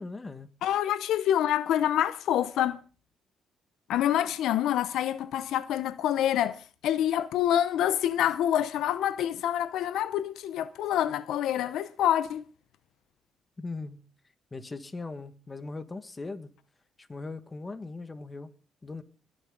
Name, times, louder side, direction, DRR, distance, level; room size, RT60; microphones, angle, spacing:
voice 1, 0.0-0.5 13.6-14.0 14.5-16.5 17.0-18.5 18.8-19.0, left 3 dB, 25° left, 1.8 m, -39 dB
voice 2, 0.6-2.8 3.9-12.5, left 11 dB, 80° left, 0.7 m, -27 dB
21.5 x 9.4 x 3.9 m
cardioid pair, 90°, 0 cm